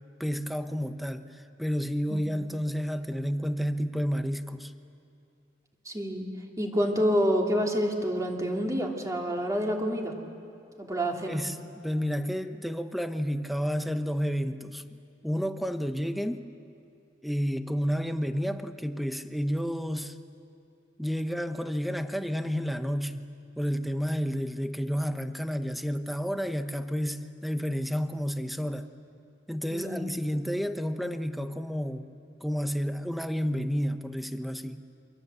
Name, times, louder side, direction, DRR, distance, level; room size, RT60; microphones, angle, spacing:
voice 1, 0.2-4.7 11.3-14.8 15.2-16.5 17.2-20.2 21.0-28.9 29.5-32.1 32.4-34.8, equal, ahead, 8 dB, 1.0 m, -31 dB
voice 2, 5.8-6.3 6.6-10.2 10.8-11.4 29.7-30.1, equal, 20° right, 1 dB, 2.8 m, -28 dB
28.5 x 25.0 x 8.1 m, 2.6 s
head